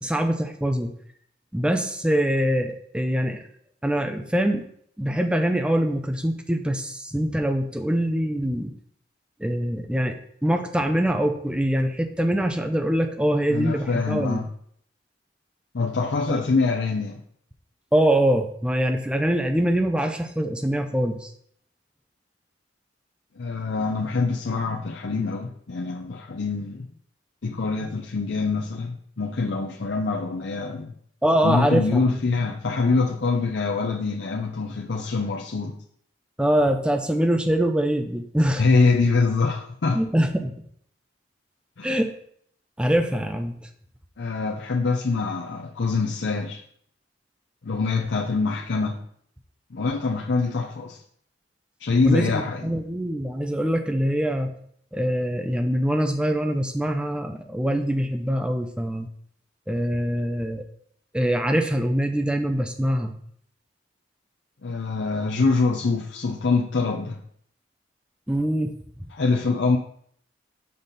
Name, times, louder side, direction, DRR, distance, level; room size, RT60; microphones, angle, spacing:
voice 1, 0.0-0.9 1.5-3.4 3.8-4.6 5.0-8.7 9.4-10.2 10.4-14.4 16.3-16.4 17.9-21.3 31.2-32.0 36.4-38.6 39.9-40.5 41.8-42.2 42.8-43.7 52.0-54.5 54.9-59.1 59.7-60.6 61.1-63.1 68.3-69.1, equal, 5° right, 6 dB, 0.5 m, -24 dB
voice 2, 13.5-14.5 15.7-17.2 23.4-26.9 27.4-30.9 31.4-35.7 38.6-40.0 41.8-41.9 44.2-46.6 47.6-49.0 49.7-51.0 51.8-52.6 64.6-67.2 69.1-69.8, left 4 dB, 65° left, 0 dB, 0.6 m, -24 dB
5.8 x 5.4 x 4.1 m, 0.64 s
head